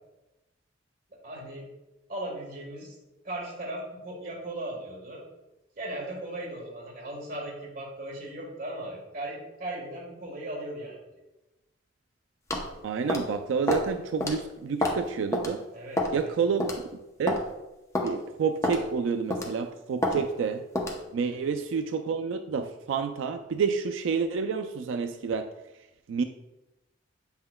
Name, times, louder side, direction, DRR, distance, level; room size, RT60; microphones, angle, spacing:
voice 1, 1.2-1.7 2.1-2.9 3.2-5.2 5.8-11.0 15.7-16.3, right 1 dB, 50° right, -3 dB, 1.4 m, -37 dB
sound 1, 12.5-12.7 13.1-13.3 13.7-13.9 14.2-14.3 14.8-15.0 15.3-15.5 16.0-16.2 16.6-16.8 17.3-17.4 18.0-18.1 18.6-18.8 19.3-19.6 20.0-20.2 20.8-21.0, left 1 dB, 15° left, 0.7 m, -27 dB
voice 2, 12.8-15.6 16.1-16.7 17.2-17.4 18.0-20.6 21.1-25.5 26.1-26.2, right 5 dB, 85° right, 8 dB, 0.3 m, -29 dB
7.7 x 5.6 x 2.2 m, 0.97 s
head